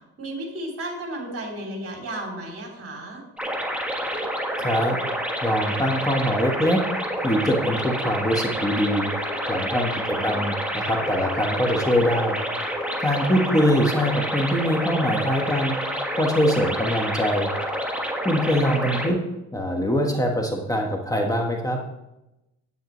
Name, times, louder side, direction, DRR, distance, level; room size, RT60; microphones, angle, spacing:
voice 1, 0.2-3.2 10.1-10.4 18.4-18.8, right 1 dB, 50° right, 0 dB, 3.3 m, -34 dB
sound 1, 3.4-19.1, equal, 5° right, 1.5 m, -28 dB
voice 2, 4.6-5.0 5.4-6.8 7.2-9.1 9.5-12.4 13.0-15.7 16.2-17.5 18.2-19.2 19.5-21.8, equal, 10° left, 1 dB, 1.3 m, -23 dB
9.5 x 9.1 x 3.1 m, 0.93 s
cardioid pair, 90°, 30 cm